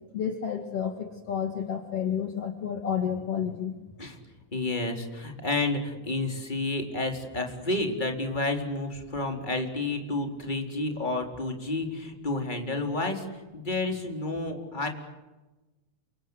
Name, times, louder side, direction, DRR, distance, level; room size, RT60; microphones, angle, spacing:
voice 1, 0.1-3.7, left 8 dB, 55° left, 5 dB, 2.8 m, -30 dB
voice 2, 4.5-14.9, left 2 dB, 15° left, 3 dB, 4.1 m, -30 dB
28.5 x 25.5 x 8.1 m, 1.1 s
omnidirectional pair, 3.4 m